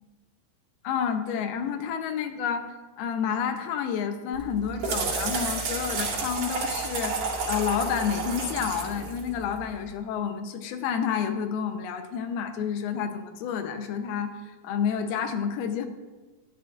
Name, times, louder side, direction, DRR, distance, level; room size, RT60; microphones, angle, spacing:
voice 1, 0.8-2.6 3.0-15.9, left 7 dB, 85° left, 7 dB, 2.7 m, -29 dB
sound 1, 4.3-9.9, right 4 dB, 70° right, 4.0 m, -31 dB
14.0 x 11.0 x 2.4 m, 1.2 s
omnidirectional pair, 4.4 m